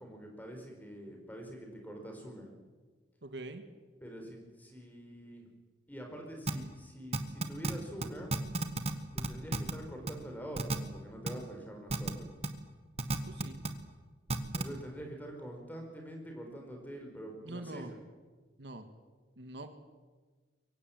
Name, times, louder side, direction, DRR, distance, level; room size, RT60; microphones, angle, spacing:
voice 1, 0.0-2.5 4.0-5.5 5.9-8.3 9.1-12.3 14.5-18.0, equal, 10° left, 2 dB, 4.7 m, -45 dB
voice 2, 3.2-3.6 13.3-13.6 17.4-17.9 18.6-18.9 19.4-19.7, right 2 dB, 65° right, 7 dB, 1.8 m, -44 dB
sound 1, 6.5-6.6 7.1-7.7 8.0-8.1 8.3-8.9 9.2-9.7 10.1-10.2 10.6-10.8 11.3-11.4 11.9-12.1 12.4-12.5 13.0-13.7 14.3-14.6, right 2 dB, 35° right, 1.5 m, -31 dB
23.5 x 15.0 x 9.1 m, 1.4 s
head